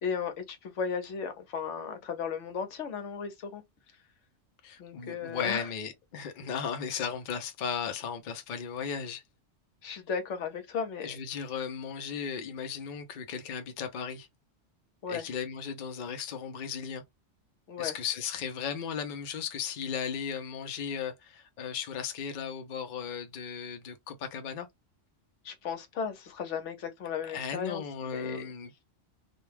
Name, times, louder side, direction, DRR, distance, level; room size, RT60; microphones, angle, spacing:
voice 1, 0.0-3.6 4.8-5.7 9.8-11.2 15.0-15.3 17.7-17.9 25.4-28.4, left 6 dB, 75° left, 1.0 m, -35 dB
voice 2, 4.6-9.2 11.0-14.3 15.1-17.0 17.8-24.7 27.2-28.8, left 7 dB, 50° left, 0.6 m, -36 dB
2.4 x 2.2 x 3.2 m
omnidirectional pair, 1.3 m